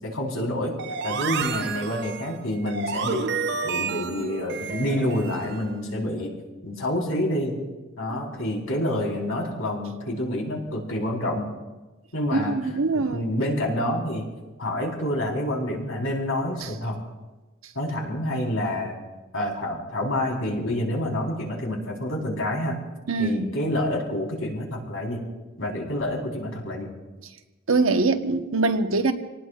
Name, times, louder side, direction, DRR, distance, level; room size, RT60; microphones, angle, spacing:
voice 1, 0.0-0.7 1.0-3.3 3.6-6.3 6.6-7.5 8.0-11.5 12.1-14.2 14.6-17.0 17.7-19.0 19.3-22.8 23.2-25.2 25.6-26.9, left 1 dB, 80° left, 4.1 m, -28 dB
sound 1, 0.8-5.7, right 5 dB, 55° right, 0.7 m, -30 dB
voice 2, 12.3-13.3 16.6-16.7 23.1-23.5 27.7-29.1, right 3 dB, 80° right, 1.2 m, -23 dB
27.5 x 19.0 x 2.5 m
head